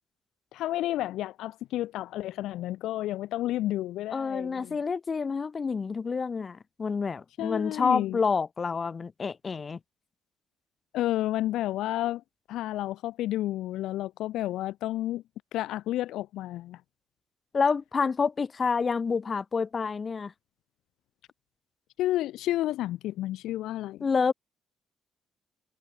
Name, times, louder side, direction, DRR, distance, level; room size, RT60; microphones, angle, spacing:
voice 1, 0.5-4.8 7.4-8.2 10.9-12.2 12.5-15.2 15.5-16.8 22.0-24.1, left 14 dB, 85° left, 1.0 m, -31 dB
voice 2, 4.1-9.8 17.5-20.3 24.0-24.3, left 5 dB, 35° left, 3.5 m, -28 dB
cardioid pair, 90°, 0 cm